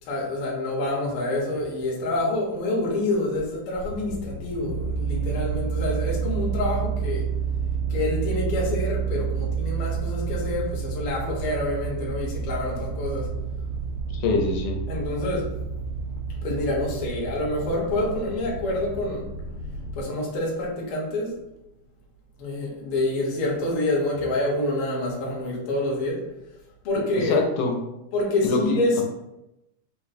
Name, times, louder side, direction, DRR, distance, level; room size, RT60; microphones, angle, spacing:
voice 1, 0.0-7.3 7.9-13.3 14.9-15.5 16.4-19.3 19.9-21.4 22.4-26.3 26.8-27.4 28.1-29.0, left 1 dB, 60° left, -3 dB, 1.5 m, -27 dB
sound 1, 3.9-20.0, right 6 dB, 90° right, 2.3 m, -30 dB
voice 2, 14.1-14.9 27.3-27.8 28.4-29.0, left 3 dB, 90° left, 2 dB, 2.2 m, -24 dB
5.2 x 2.0 x 4.1 m, 0.92 s
omnidirectional pair, 3.5 m